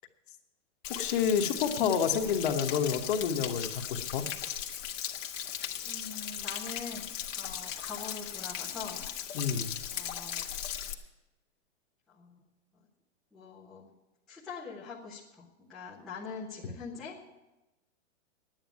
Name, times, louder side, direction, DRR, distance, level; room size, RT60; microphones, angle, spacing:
Stream / Splash splatter / Trickle dribble, 0.8-10.9, left 10 dB, 70° left, 1.5 m, -38 dB
voice 1, 0.9-4.2 9.3-9.7, left 7 dB, 40° left, 6 dB, 1.2 m, -29 dB
voice 2, 5.8-7.1 7.4-9.0 9.9-10.5 12.1-12.4 13.3-13.9 14.3-17.2, left 5 dB, ahead, -11 dB, 0.5 m, -43 dB
9.9 x 9.2 x 9.4 m, 1.0 s
hypercardioid pair, 170°, 38 cm